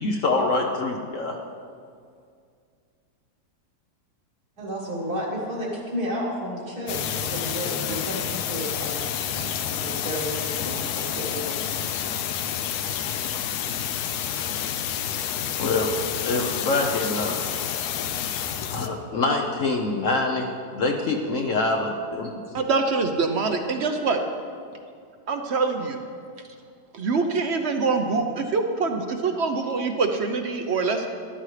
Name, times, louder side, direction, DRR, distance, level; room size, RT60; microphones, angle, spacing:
voice 1, 0.0-1.4 14.5-14.6 15.6-15.9 16.2-17.5 18.7-22.3, left 3 dB, 60° left, 1 dB, 1.0 m, -25 dB
voice 2, 4.6-9.1 9.3-11.8, equal, 70° right, -7 dB, 2.2 m, -32 dB
sound 1, 6.9-18.9, left 9 dB, 80° left, 1.2 m, -29 dB
voice 3, 22.5-24.2 25.3-26.0 26.9-31.1, right 4 dB, 55° right, 5 dB, 0.8 m, -24 dB
13.0 x 12.0 x 3.3 m, 2.2 s
omnidirectional pair, 1.7 m